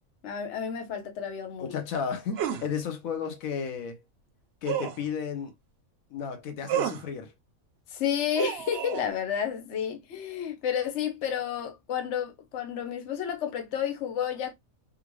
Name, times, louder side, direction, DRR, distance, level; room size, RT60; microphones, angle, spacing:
voice 1, 0.2-1.8 7.9-14.5, left 8 dB, 60° left, 1.0 m, -31 dB
voice 2, 1.6-4.0 4.6-5.5 6.1-7.3, left 6 dB, 80° left, 1.2 m, -33 dB
sound 1, 2.4-2.7 4.7-5.0 6.7-7.1 8.4-9.1, right 10 dB, 60° right, 0.8 m, -30 dB
3.7 x 2.4 x 3.0 m
omnidirectional pair, 1.4 m